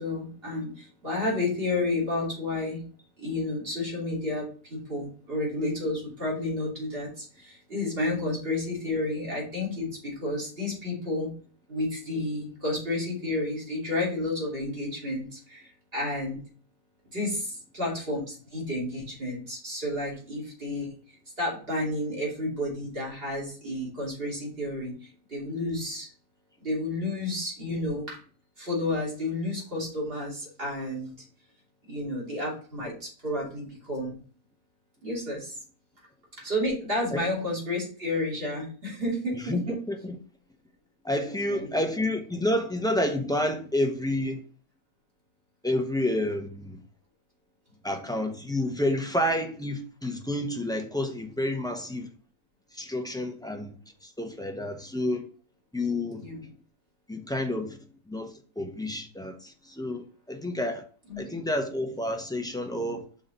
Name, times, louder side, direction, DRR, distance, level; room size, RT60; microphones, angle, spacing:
voice 1, 0.0-2.8 3.2-11.3 11.7-16.4 17.1-26.1 26.6-28.2 28.6-31.1 31.9-34.2 35.0-35.6 36.4-39.8 41.5-41.8 56.2-56.4 61.1-61.4, left 2 dB, 35° right, 3.1 m, -31 dB
voice 2, 39.3-40.2 41.0-44.4 45.6-46.8 47.8-52.1 52.7-53.8 54.0-55.3 55.7-56.4 57.1-57.8 58.1-60.8 61.2-63.0, left 1 dB, 5° left, 0.4 m, -29 dB
5.9 x 4.1 x 5.2 m
omnidirectional pair, 1.7 m